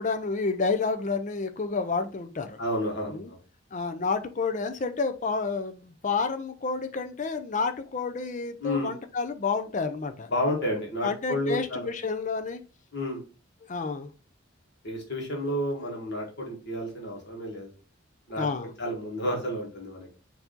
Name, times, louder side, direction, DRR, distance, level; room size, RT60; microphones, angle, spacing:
voice 1, 0.0-2.6 3.1-3.3 3.7-10.3 11.0-12.6 13.7-14.1 18.4-18.7, left 4 dB, 35° left, 0.5 m, -30 dB
voice 2, 2.6-3.4 8.6-8.9 10.3-11.9 12.9-13.2 14.8-17.7 18.3-18.5 18.8-20.1, left 1 dB, 55° left, 1.5 m, -31 dB
4.6 x 2.8 x 3.7 m
head